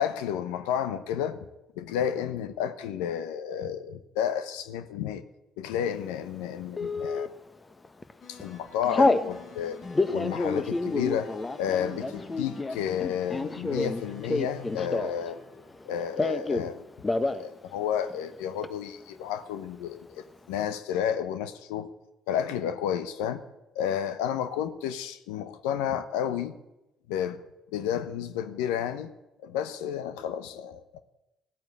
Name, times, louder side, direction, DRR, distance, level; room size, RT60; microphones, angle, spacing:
voice 1, 0.0-1.4 1.8-5.2 5.6-7.3 8.3-9.8 10.1-11.3 11.6-15.4 15.8-16.9 17.2-21.9 22.3-23.4 23.7-26.6 27.1-27.4 27.7-29.1 29.4-31.0, left 9 dB, 80° left, 11 dB, 0.9 m, -31 dB
Telephone, 6.8-7.3 7.8-8.1 8.4-9.3 9.8-15.3 15.6-16.7 17.0-17.4 17.7-17.8 18.1-18.7, left 2 dB, 25° left, 1.2 m, -28 dB
sound 1, 8.2-16.4, left 5 dB, 55° left, 3.9 m, -47 dB
16.0 x 9.2 x 8.6 m, 0.93 s
hypercardioid pair, 55°, 0 cm